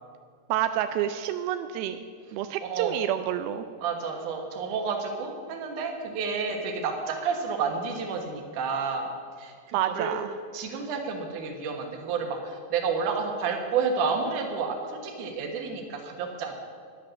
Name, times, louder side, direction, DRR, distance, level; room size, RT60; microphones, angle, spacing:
voice 1, 0.5-2.0 2.3-3.7 9.7-10.3, right 11 dB, 85° right, 9 dB, 2.1 m, -28 dB
voice 2, 2.6-3.0 3.8-9.1 9.4-10.2 10.5-16.5, right 5 dB, 60° right, 3 dB, 2.5 m, -30 dB
13.0 x 10.5 x 6.5 m, 2.2 s
omnidirectional pair, 4.9 m